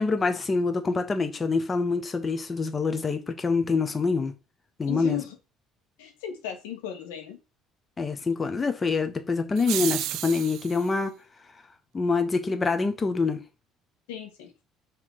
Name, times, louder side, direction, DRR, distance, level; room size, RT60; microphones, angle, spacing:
voice 1, 0.0-4.3 4.8-5.2 8.0-11.1 11.9-13.4, left 4 dB, 30° left, 1.3 m, -26 dB
voice 2, 4.9-5.4 6.0-7.4 14.1-14.5, left 9 dB, 85° left, 1.8 m, -35 dB
sound 1, 9.6-10.9, right 13 dB, 65° right, 0.4 m, -32 dB
5.6 x 3.6 x 4.9 m
hypercardioid pair, 65°, 0 cm